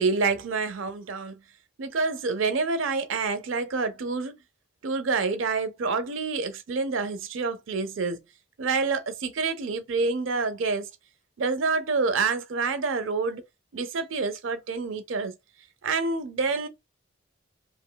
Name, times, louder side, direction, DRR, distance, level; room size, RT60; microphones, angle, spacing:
voice 1, 0.0-1.3 1.8-4.3 4.8-8.2 8.6-10.9 11.4-13.4 13.7-15.3 15.8-16.7, right 4 dB, 80° right, 0.5 m, -27 dB
2.9 x 2.6 x 2.2 m
head